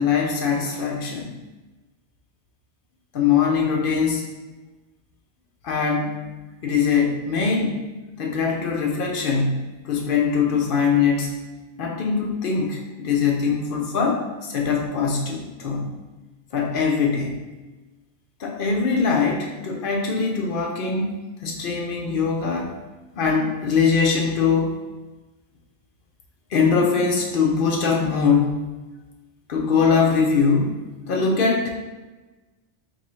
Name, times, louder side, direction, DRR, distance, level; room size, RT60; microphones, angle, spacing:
voice 1, 0.0-1.3 3.1-4.3 5.6-6.2 6.6-7.9 8.2-11.3 11.8-15.9 16.5-17.4 18.4-22.7 23.2-24.7 26.5-28.6 29.5-31.7, left 5 dB, 60° left, 0 dB, 0.6 m, -22 dB
3.9 x 2.6 x 3.0 m, 1.2 s
omnidirectional pair, 1.2 m